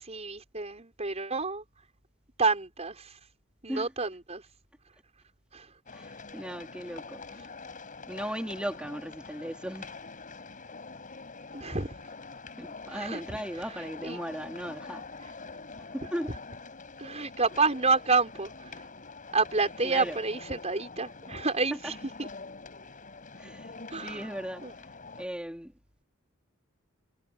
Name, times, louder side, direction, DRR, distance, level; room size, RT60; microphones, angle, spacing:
voice 1, 0.0-1.6 2.4-3.1 3.6-4.4 5.5-5.7 11.5-11.9 12.9-13.2 14.0-14.2 17.0-18.7 19.3-22.3 23.9-24.3 24.6-24.7, right 4 dB, 30° right, 5.7 m, -29 dB
sound 1, 5.9-25.3, left 4 dB, 40° left, 5.3 m, -45 dB
voice 2, 5.9-7.4 8.1-9.9 12.6-15.1 15.9-16.3 19.8-20.2 21.8-21.9 23.4-24.7 25.2-25.7, equal, 5° right, 3.9 m, -37 dB
head